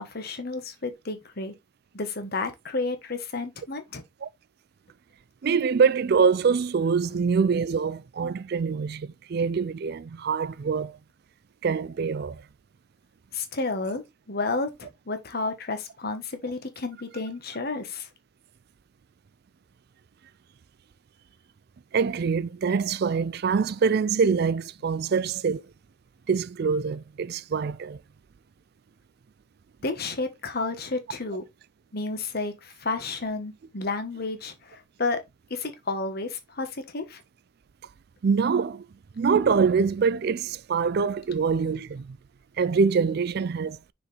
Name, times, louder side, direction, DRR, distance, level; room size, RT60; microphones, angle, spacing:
voice 1, 0.0-1.5 1.9-4.0 13.3-18.1 29.8-31.4 31.9-35.2 35.5-37.2, left 3 dB, 50° left, 1.4 m, -31 dB
voice 2, 5.4-11.0 11.6-12.4 21.9-25.6 26.3-28.0 38.2-38.8 39.2-42.2 42.6-43.8, right 5 dB, 55° right, 0.4 m, -24 dB
6.1 x 5.0 x 3.3 m
head